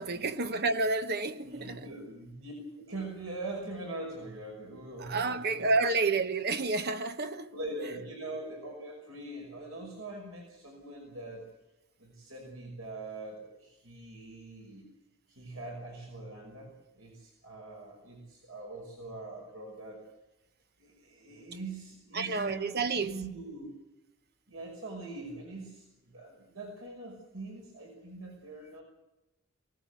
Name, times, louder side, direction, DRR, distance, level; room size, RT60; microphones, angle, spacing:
voice 1, 0.0-1.8 5.0-7.5 22.1-23.1, right 3 dB, 50° right, 1.2 m, -30 dB
voice 2, 1.4-5.7 7.5-11.5 12.0-14.9 15.3-20.1 20.8-23.7 24.5-28.8, right 2 dB, 80° right, 5.7 m, -43 dB
23.0 x 18.5 x 8.3 m
head